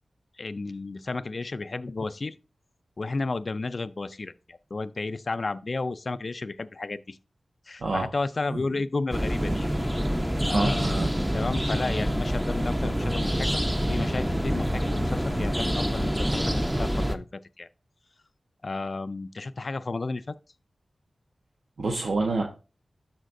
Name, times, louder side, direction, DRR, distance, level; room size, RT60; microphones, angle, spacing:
voice 1, 0.4-2.4 3.0-7.2 7.7-9.7 10.5-11.1 11.3-13.6 13.9-17.7 18.6-20.4, left 3 dB, 55° left, 0.4 m, -32 dB
sound 1, 9.1-17.2, equal, 5° right, 0.7 m, -26 dB
voice 2, 10.5-11.1 21.8-22.4, right 3 dB, 90° right, 1.1 m, -26 dB
13.0 x 4.3 x 2.6 m
wide cardioid pair, 65°, 0 cm